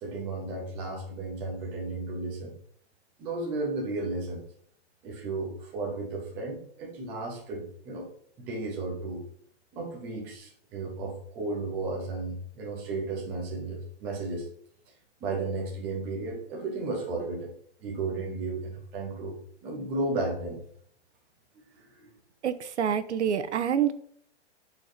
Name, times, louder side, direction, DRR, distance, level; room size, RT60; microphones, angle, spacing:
voice 1, 0.0-2.5 3.2-4.4 5.0-8.1 8.4-9.3 9.7-14.5 15.2-17.5 17.8-20.6 21.8-22.1, right 3 dB, 5° right, -1 dB, 0.3 m, -34 dB
voice 2, 22.4-23.9, right 8 dB, 75° right, 13 dB, 1.1 m, -27 dB
10.5 x 4.5 x 5.9 m, 0.62 s
hypercardioid pair, 160°, 35 cm